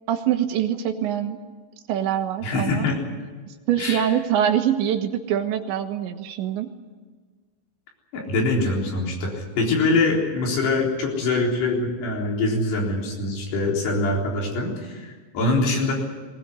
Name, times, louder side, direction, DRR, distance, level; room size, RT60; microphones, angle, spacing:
voice 1, 0.1-1.4 1.9-2.9 3.7-6.7, right 10 dB, 85° right, 6 dB, 3.7 m, -24 dB
voice 2, 2.4-3.1 3.8-4.1 8.1-15.9, left 2 dB, 70° left, -1 dB, 6.0 m, -24 dB
20.5 x 19.5 x 9.9 m, 1.4 s
omnidirectional pair, 5.1 m